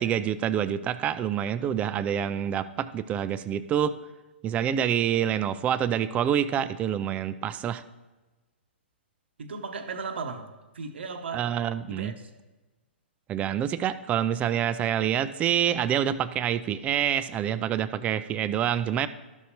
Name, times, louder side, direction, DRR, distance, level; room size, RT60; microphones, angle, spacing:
voice 1, 0.0-3.9 4.4-7.8 11.3-12.2 13.3-19.1, right 9 dB, 20° right, 14 dB, 0.4 m, -27 dB
voice 2, 9.4-10.5 10.7-11.5 11.9-12.3, right 4 dB, 70° right, 8 dB, 0.9 m, -36 dB
12.5 x 6.3 x 2.9 m, 1.2 s
hypercardioid pair, 120°, 6 cm